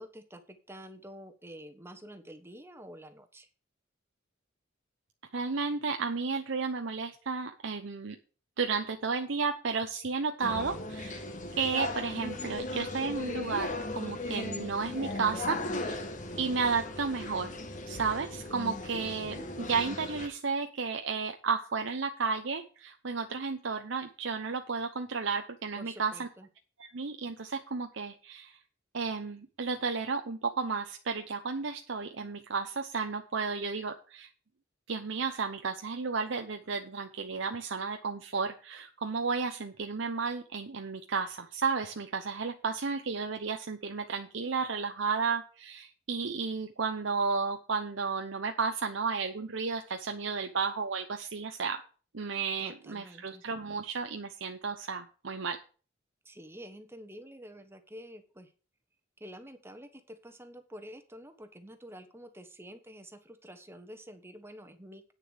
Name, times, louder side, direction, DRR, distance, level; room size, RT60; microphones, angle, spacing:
voice 1, 0.0-3.5 25.8-26.5 52.6-53.4 56.2-58.5 59.2-65.1, equal, 10° right, 7 dB, 1.3 m, -48 dB
voice 2, 5.3-8.2 8.6-11.2 11.6-16.0 16.4-17.5 17.9-26.3 26.8-28.6 28.9-34.3 34.9-51.8 52.1-55.6, right 5 dB, 65° right, 5 dB, 0.8 m, -33 dB
sound 1, 10.4-20.3, left 2 dB, 40° left, 1.4 m, -37 dB
9.2 x 6.7 x 6.5 m, 0.37 s
head